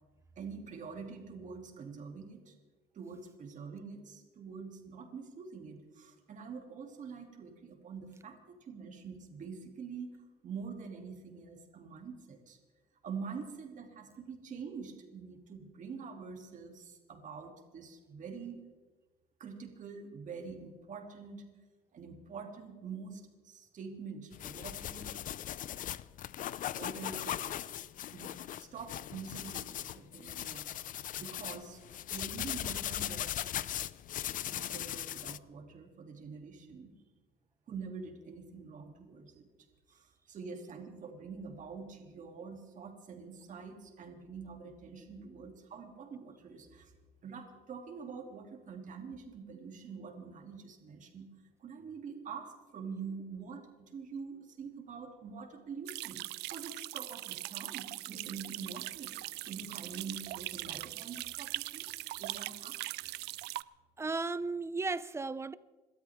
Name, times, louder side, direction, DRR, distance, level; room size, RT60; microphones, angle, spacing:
voice 1, 0.3-2.5 2.9-10.2 10.4-12.6 13.0-18.7 19.4-21.4 21.9-25.2 26.7-27.6 28.1-30.8 31.2-31.8 32.1-33.5 34.5-36.9 37.7-39.5 39.9-46.9 47.2-51.3 51.6-62.9, right 5 dB, 50° right, 3.0 m, -46 dB
sound 1, 24.3-35.4, left 12 dB, 55° left, 0.5 m, -39 dB
sound 2, 55.9-63.6, right 19 dB, 80° right, 0.4 m, -41 dB
voice 2, 64.0-65.5, right 3 dB, 15° right, 0.6 m, -35 dB
27.0 x 13.0 x 3.7 m
cardioid pair, 110°, 17 cm